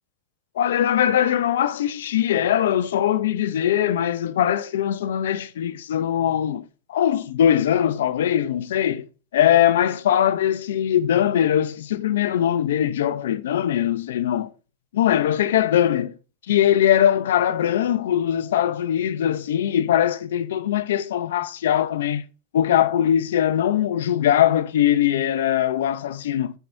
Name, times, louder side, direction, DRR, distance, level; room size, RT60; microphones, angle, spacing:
voice 1, 0.6-9.1 9.3-14.5 14.9-16.1 16.5-22.2 22.5-26.5, left 10 dB, 85° left, 0.6 m, -21 dB
9.0 x 4.6 x 2.6 m
supercardioid pair, 130°, 0 cm